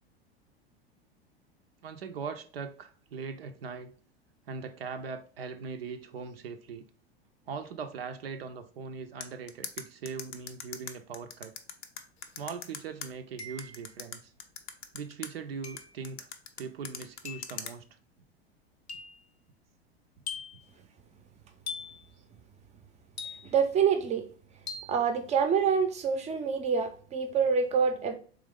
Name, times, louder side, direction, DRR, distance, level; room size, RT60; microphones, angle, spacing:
voice 1, 1.8-3.9 4.5-6.9 7.5-11.5 12.4-14.3 14.9-16.3 16.6-17.8, right 5 dB, 65° right, 0.6 m, -40 dB
sound 1, 9.2-13.1 13.6-15.3 15.8-17.7, left 8 dB, 30° left, 0.5 m, -40 dB
sound 2, 12.2-12.3 13.4-13.9 15.6-16.0 17.2-17.6 18.9-19.2 20.3-20.7 21.7-22.1 23.2-23.7 24.7-25.0, left 5 dB, 80° left, 0.7 m, -41 dB
voice 2, 23.4-24.2 24.9-28.1, right 6 dB, 20° right, 0.6 m, -26 dB
3.8 x 3.1 x 3.5 m
figure-of-eight pair, 85°, 31 cm